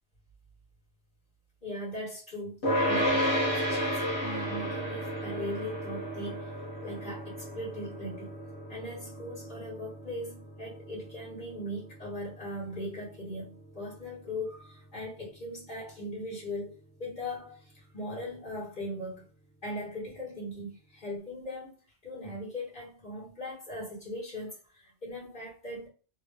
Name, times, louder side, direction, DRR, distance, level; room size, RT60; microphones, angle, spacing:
voice 1, 1.6-8.4 8.7-19.2 19.6-21.8 22.0-25.9, left 1 dB, 50° left, 1.6 m, -39 dB
sound 1, 2.6-13.9, equal, 80° left, 1.4 m, -33 dB
3.3 x 2.7 x 2.2 m
omnidirectional pair, 1.1 m